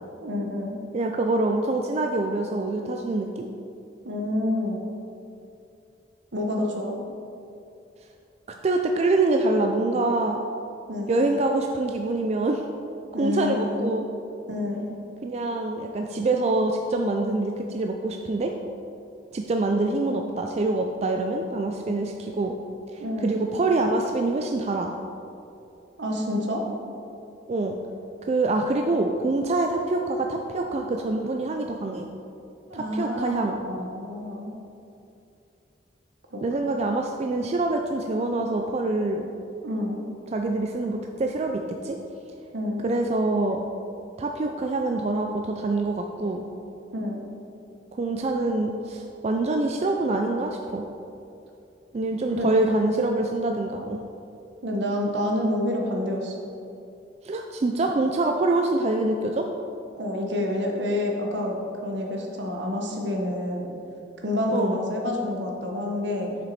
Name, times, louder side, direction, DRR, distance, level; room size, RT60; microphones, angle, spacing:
voice 1, 0.2-0.8 4.0-4.9 6.3-6.9 10.9-11.2 13.1-13.9 14.5-14.9 23.0-23.4 26.0-26.6 32.7-34.5 36.3-36.8 39.6-40.1 42.5-42.9 46.9-47.2 52.4-52.5 54.6-56.3 60.0-61.6 61.8-63.7 64.2-66.4, left 1 dB, 75° right, 0 dB, 1.1 m, -28 dB
voice 2, 0.9-3.5 8.5-10.4 11.1-12.6 13.2-14.0 15.2-18.5 19.3-22.5 22.9-24.9 27.5-27.8 28.2-32.1 32.7-33.6 36.4-39.3 40.3-42.0 42.8-43.6 44.2-46.5 47.9-50.8 51.9-54.0 57.2-59.5 64.5-64.8, right 2 dB, 35° right, 3 dB, 0.3 m, -25 dB
7.4 x 6.1 x 4.1 m, 2.7 s
head